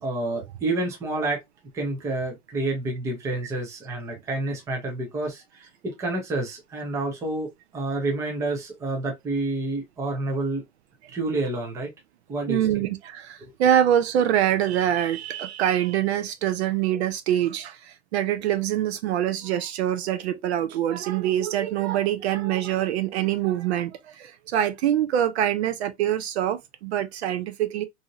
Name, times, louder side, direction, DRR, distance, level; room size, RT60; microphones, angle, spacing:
voice 1, 0.0-1.4 1.7-10.6 11.1-11.9 12.3-12.8 13.4-13.5, right 2 dB, 10° right, 0.5 m, -29 dB
voice 2, 12.5-17.8 18.1-23.9 24.2-27.8, right 11 dB, 60° right, 0.5 m, -24 dB
2.7 x 2.4 x 2.7 m
supercardioid pair, 155°, 38 cm